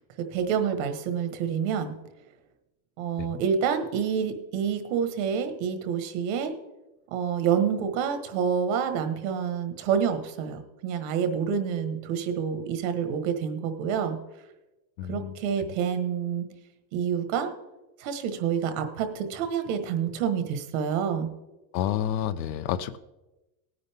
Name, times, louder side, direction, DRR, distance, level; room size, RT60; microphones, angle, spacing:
voice 1, 0.2-2.0 3.0-6.5 7.1-14.2 15.1-16.5 16.9-17.5 18.0-21.3, right 7 dB, 50° right, 8 dB, 1.5 m, -28 dB
voice 2, 15.0-15.4 21.7-23.0, left 10 dB, 85° left, 12 dB, 0.9 m, -29 dB
17.5 x 9.7 x 3.6 m, 1.0 s
supercardioid pair, 165°, 50 cm